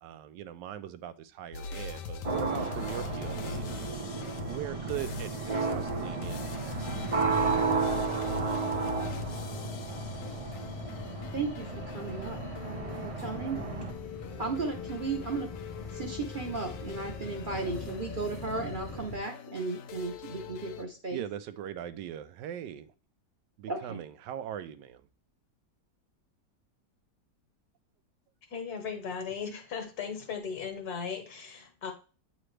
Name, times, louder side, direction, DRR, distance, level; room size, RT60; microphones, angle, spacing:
voice 1, 0.0-7.1 18.9-19.1 21.1-22.9 23.6-25.0, right 10 dB, 85° right, 12 dB, 1.2 m, -41 dB
sound 1, 1.5-20.8, left 5 dB, 85° left, 1.3 m, -42 dB
sound 2, 2.2-13.9, right 4 dB, 55° right, 0.3 m, -33 dB
sound 3, 6.8-19.2, left 2 dB, 25° left, 0.9 m, -43 dB
voice 2, 11.3-12.4 12.6-13.6 14.4-15.5 15.9-21.2 23.7-24.0, right 3 dB, 40° right, 2 dB, 0.8 m, -35 dB
voice 3, 28.5-31.9, left 6 dB, 65° left, 5 dB, 1.7 m, -37 dB
8.8 x 3.9 x 3.2 m, 0.35 s
omnidirectional pair, 1.8 m